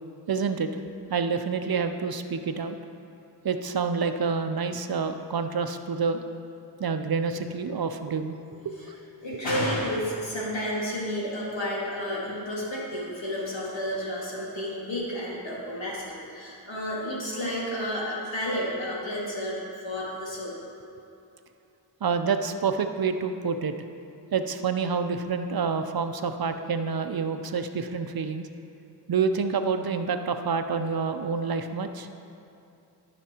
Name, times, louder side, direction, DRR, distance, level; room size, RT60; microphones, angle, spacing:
voice 1, 0.3-0.7 1.1-2.8 3.4-6.2 6.8-8.7 9.3-9.4 22.0-23.7 24.3-28.5 29.1-32.1, right 5 dB, 55° right, 8 dB, 0.6 m, -28 dB
voice 2, 9.2-20.6, equal, 85° left, -6 dB, 2.1 m, -31 dB
13.5 x 5.9 x 2.9 m, 2.6 s
wide cardioid pair, 55°, 44 cm